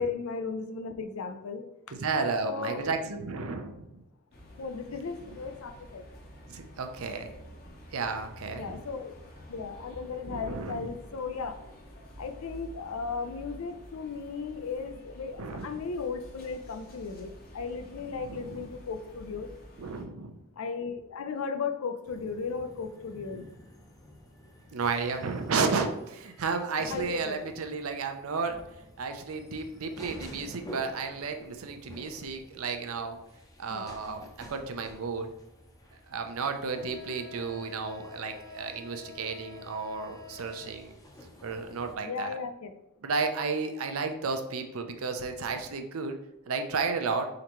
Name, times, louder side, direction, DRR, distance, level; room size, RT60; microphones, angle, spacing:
voice 1, 0.0-1.6 2.4-2.9 4.6-6.0 8.5-9.1 9.5-11.6 12.2-19.5 20.6-23.4 26.9-27.4 33.7-33.9 42.0-42.7, left 5 dB, 85° left, 8 dB, 0.5 m, -36 dB
voice 2, 1.9-3.9 5.3-5.4 6.5-7.3 7.9-8.8 10.3-10.9 15.4-15.7 18.0-18.7 19.8-20.3 23.3-23.5 24.7-28.6 29.0-33.2 33.6-35.3 36.1-41.0 41.4-42.4 43.0-46.1 46.5-47.3, right 4 dB, 85° right, 6 dB, 0.6 m, -33 dB
sound 1, 4.3-20.0, equal, 45° left, 0.9 m, -49 dB
sound 2, 22.1-42.0, left 2 dB, 15° left, 0.6 m, -49 dB
4.4 x 3.8 x 3.0 m, 0.90 s
head